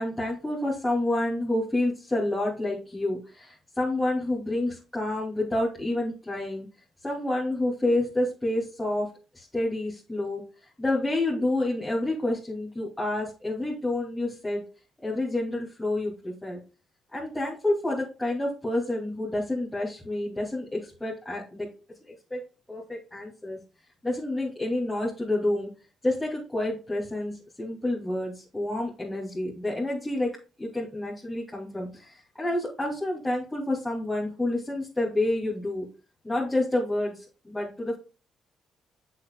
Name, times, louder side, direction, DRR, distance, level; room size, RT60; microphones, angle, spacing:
voice 1, 0.0-6.7 7.0-9.1 9.3-10.4 10.8-14.6 15.0-16.6 17.1-21.7 22.3-22.4 22.7-23.6 24.0-25.7 26.0-30.3 30.6-35.9 36.2-38.0, left 1 dB, 10° left, -6 dB, 2.7 m, -29 dB
7.8 x 6.5 x 2.3 m, 0.34 s
cardioid pair, 90°, 0 cm